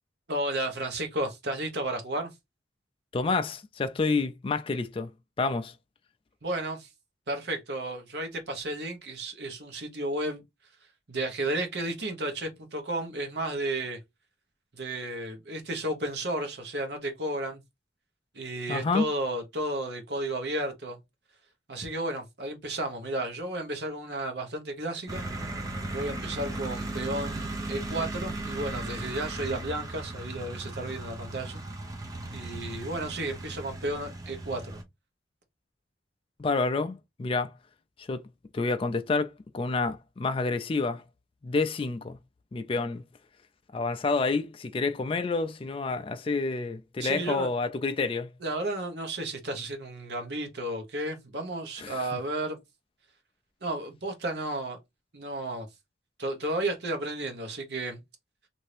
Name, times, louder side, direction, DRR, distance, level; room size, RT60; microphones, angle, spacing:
voice 1, 0.3-2.3 6.4-6.9 7.3-10.4 11.1-14.0 14.7-17.6 18.3-21.0 21.7-25.2 25.9-31.6 32.3-34.8 47.0-47.5 48.4-52.6 53.6-54.8 55.1-55.7 56.2-58.0, right 1 dB, 55° right, 0.9 m, -33 dB
voice 2, 3.1-5.1 5.4-5.7 18.7-19.0 36.4-37.5 38.0-38.2 38.5-41.0 41.4-42.2 42.5-43.0 43.7-48.3 51.8-52.0, left 3 dB, 30° left, 0.3 m, -28 dB
sound 1, 25.1-34.8, right 2 dB, 20° right, 0.6 m, -36 dB
2.8 x 2.6 x 3.2 m
head